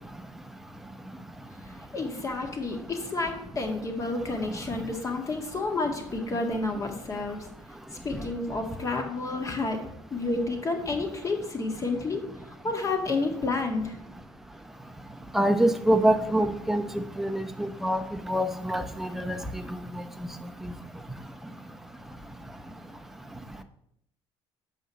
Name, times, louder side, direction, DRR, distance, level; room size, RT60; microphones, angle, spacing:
voice 1, 1.9-7.5 7.9-9.8 10.1-13.9, left 3 dB, 30° left, 4 dB, 1.9 m, -30 dB
voice 2, 15.3-16.8 17.2-18.0 18.3-19.4, right 1 dB, 5° right, 6 dB, 0.9 m, -24 dB
6.3 x 5.4 x 6.9 m, 0.74 s
cardioid pair, 100°, 10 cm